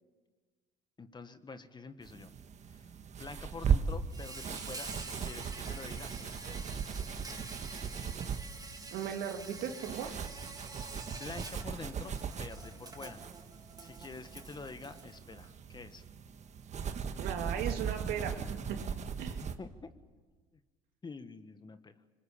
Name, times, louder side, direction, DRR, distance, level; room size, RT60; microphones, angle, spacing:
voice 1, 1.0-2.3 2.7-2.9 3.2-6.8 7.3-7.6 11.1-13.2 13.8-16.1 19.6-19.9 21.0-21.9, left 4 dB, 25° left, 10 dB, 1.7 m, -47 dB
sound 1, 2.0-19.6, right 6 dB, 45° right, 1.7 m, -38 dB
Insect, 4.1-15.5, right 3 dB, 20° right, 2.6 m, -48 dB
voice 2, 8.9-10.1 17.2-18.8 19.2-19.4, right 8 dB, 65° right, 5 dB, 2.7 m, -37 dB
25.5 x 21.5 x 8.8 m, 1.4 s
hypercardioid pair, 75°, 17 cm